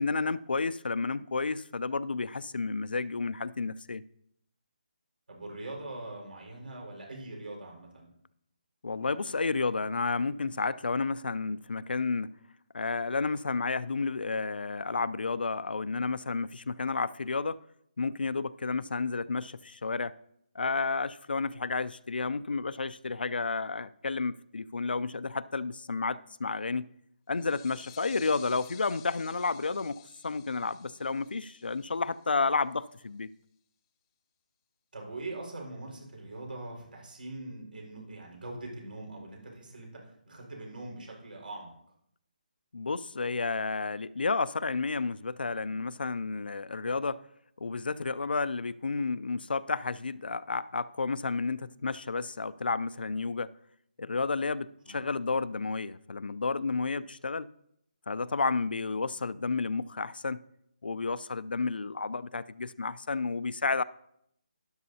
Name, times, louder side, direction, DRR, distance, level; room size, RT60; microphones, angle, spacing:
voice 1, 0.0-4.0 8.8-12.3 12.7-17.6 18.0-20.1 20.5-26.9 27.3-33.3 42.7-47.2 47.6-53.5 54.0-57.5 58.1-60.4 60.8-63.8, left 4 dB, 90° left, 0.4 m, -31 dB
voice 2, 5.3-8.1 28.1-28.2 34.9-41.7 54.8-55.0, right 2 dB, 75° right, 4.8 m, -42 dB
sound 1, 27.3-32.7, left 10 dB, 15° left, 0.7 m, -54 dB
12.5 x 10.5 x 2.8 m
hypercardioid pair, 165°, 5 cm